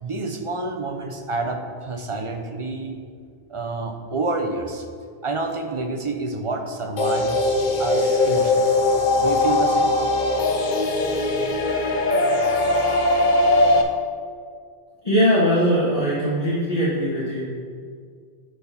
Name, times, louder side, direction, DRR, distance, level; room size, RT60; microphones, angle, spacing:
voice 1, 0.0-3.0 3.5-4.9 5.2-8.7 9.2-9.9, right 3 dB, 35° right, 5 dB, 0.6 m, -28 dB
sound 1, 7.0-13.8, left 2 dB, 50° left, 0.8 m, -20 dB
voice 2, 15.0-17.4, equal, 35° left, -7 dB, 1.5 m, -20 dB
9.0 x 4.2 x 5.8 m, 2.1 s
omnidirectional pair, 1.1 m